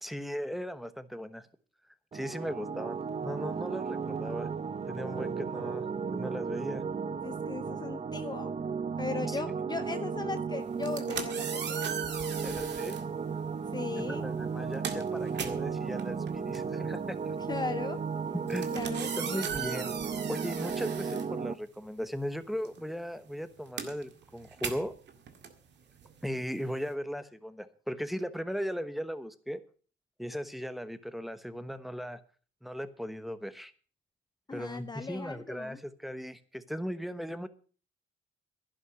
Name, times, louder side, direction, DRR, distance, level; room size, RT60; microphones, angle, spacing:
voice 1, 0.0-1.5 2.1-4.5 4.9-5.9 6.1-6.8 9.2-9.4 12.4-13.0 14.1-17.3 18.3-18.7 19.2-19.9 20.3-24.9 26.2-29.6 30.2-32.2 32.6-33.7 34.5-37.5, equal, ahead, 11 dB, 1.1 m, -37 dB
sound 1, 2.1-21.5, right 5 dB, 30° right, 0.8 m, -35 dB
voice 2, 7.2-8.5 9.0-11.8 13.7-14.2 17.5-18.0 18.7-19.4 34.5-35.8, left 4 dB, 20° left, 10 dB, 0.7 m, -37 dB
sound 2, 10.7-13.1 14.0-14.2 14.5-22.0 22.3-26.9, right 7 dB, 60° right, 2.0 m, -39 dB
11.5 x 11.0 x 6.3 m, 0.41 s
cardioid pair, 90°, 20 cm